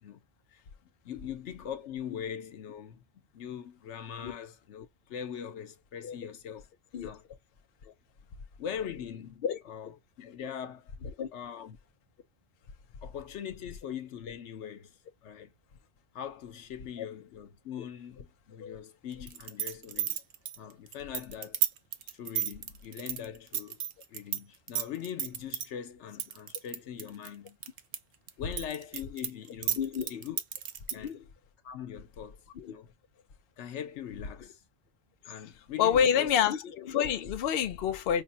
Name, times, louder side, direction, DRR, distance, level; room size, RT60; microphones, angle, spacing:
voice 1, 1.0-3.0 3.3-6.7 7.0-7.2 8.6-10.9 11.3-11.8 13.0-15.5 16.1-20.2 20.6-21.6 22.1-23.8 24.1-27.6 28.4-30.4 30.9-31.2 31.6-32.4 32.7-32.9 33.6-34.6 35.2-36.5, left 9 dB, 90° left, 1.0 m, -41 dB
sound 1, 19.3-24.4 24.7-25.7 26.2-28.0 28.3-31.1, right 11 dB, 75° right, 0.9 m, -32 dB
voice 2, 29.8-30.1 30.9-31.2 32.6-32.7 35.8-38.2, left 8 dB, 65° left, 0.8 m, -28 dB
5.2 x 2.1 x 2.6 m
omnidirectional pair, 1.2 m